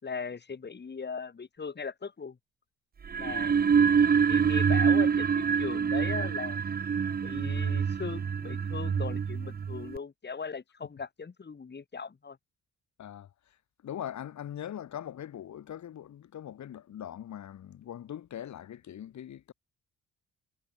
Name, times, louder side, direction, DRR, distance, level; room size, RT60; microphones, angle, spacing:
voice 1, 0.0-2.4 3.2-3.6 4.3-6.6 7.2-12.4, left 5 dB, 35° left, 5.5 m, -39 dB
sound 1, 3.0-10.0, right 6 dB, 30° right, 0.8 m, -26 dB
voice 2, 13.0-13.6 13.8-19.5, left 10 dB, 65° left, 6.7 m, -41 dB
cardioid pair, 90°, 30 cm